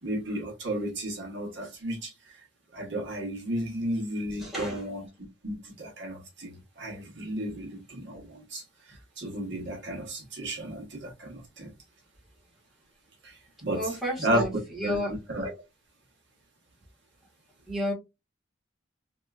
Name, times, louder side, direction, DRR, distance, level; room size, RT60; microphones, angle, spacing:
voice 1, 0.0-2.4 2.7-5.0 5.4-11.7 13.2-13.8 14.2-14.4 14.8-15.0 15.3-15.5, right 1 dB, 60° right, 1.3 m, -33 dB
voice 2, 4.4-4.9 13.7-15.1 17.7-17.9, equal, ahead, 1.5 m, -31 dB
3.3 x 2.9 x 2.4 m
head